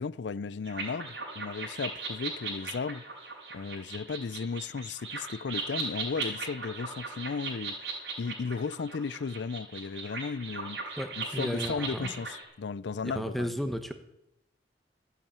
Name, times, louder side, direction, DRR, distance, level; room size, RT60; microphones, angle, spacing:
voice 1, 0.0-3.0 3.5-7.8 8.2-13.5, left 5 dB, 75° left, 0.5 m, -35 dB
sound 1, 0.6-12.4, right 4 dB, 85° right, 4.4 m, -38 dB
voice 2, 11.0-12.1 13.0-13.9, equal, ahead, 1.0 m, -33 dB
13.5 x 8.6 x 8.8 m
head